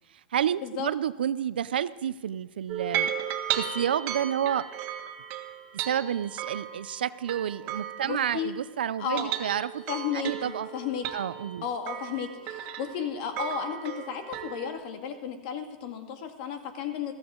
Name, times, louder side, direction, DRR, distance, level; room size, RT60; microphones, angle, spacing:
voice 1, 0.3-3.1 3.6-4.7 5.8-9.8 10.1-10.7 11.1-11.6, right 9 dB, 90° right, 17 dB, 0.5 m, -29 dB
sound 1, 2.7-8.7 9.0-14.7, right 9 dB, 45° right, 1.6 m, -35 dB
voice 2, 8.0-8.5 9.0-9.3 9.9-11.0 11.6-17.1, left 8 dB, 55° left, 6 dB, 1.9 m, -33 dB
14.0 x 14.0 x 3.8 m, 1.3 s
hypercardioid pair, 125°, 5 cm